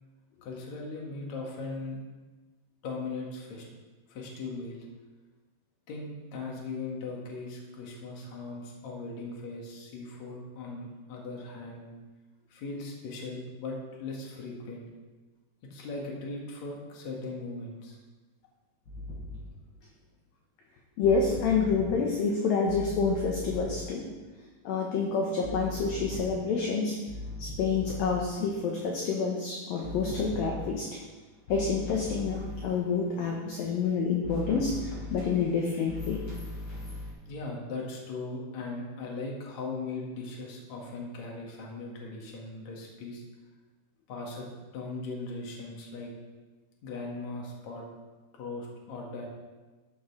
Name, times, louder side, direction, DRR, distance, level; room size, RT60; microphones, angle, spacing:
voice 1, 0.4-2.0 2.8-3.6 4.1-4.9 5.9-11.9 12.5-14.8 15.7-18.0 37.3-43.2 44.1-46.1 46.8-47.8 48.3-49.3, left 3 dB, 50° left, -1 dB, 2.4 m, -39 dB
sound 1, 18.9-19.5 21.0-22.0 22.7-23.9 25.4-26.7 27.1-28.4 29.8-31.0 31.5-32.8 34.2-37.1, left 1 dB, 30° left, 4.4 m, -39 dB
voice 2, 21.0-24.0 24.6-27.0 27.4-30.9 31.5-36.2, left 5 dB, 70° left, -1 dB, 2.3 m, -28 dB
12.5 x 11.0 x 3.4 m, 1.2 s
omnidirectional pair, 5.4 m